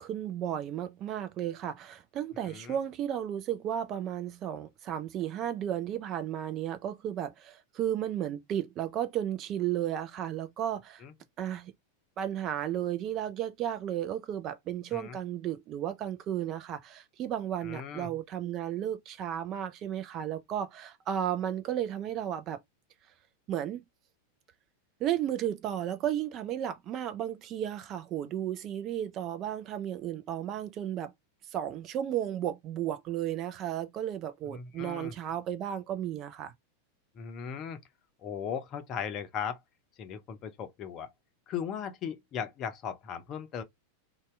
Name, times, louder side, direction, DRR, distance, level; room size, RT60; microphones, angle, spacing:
voice 1, 0.0-11.0 11.4-11.7 12.2-22.6 23.5-23.8 25.0-31.1 31.5-36.5, right 10 dB, 35° right, 0.4 m, -34 dB
voice 2, 2.4-2.8 11.0-11.1 14.9-15.2 17.6-18.1 34.5-35.1 37.1-37.8 38.2-39.6 40.0-41.1 41.5-43.6, left 7 dB, 35° left, 0.6 m, -37 dB
2.7 x 2.2 x 3.1 m
figure-of-eight pair, 90°, 0 cm